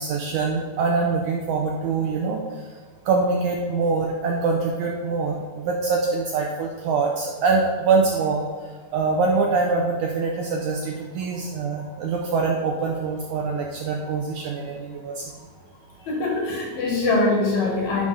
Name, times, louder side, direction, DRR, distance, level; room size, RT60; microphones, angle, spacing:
voice 1, 0.0-2.8 3.1-15.3, right 4 dB, 75° right, 0 dB, 1.8 m, -24 dB
voice 2, 16.1-18.1, left 2 dB, 60° left, -1 dB, 2.5 m, -23 dB
11.0 x 5.1 x 4.0 m, 1.5 s
omnidirectional pair, 4.1 m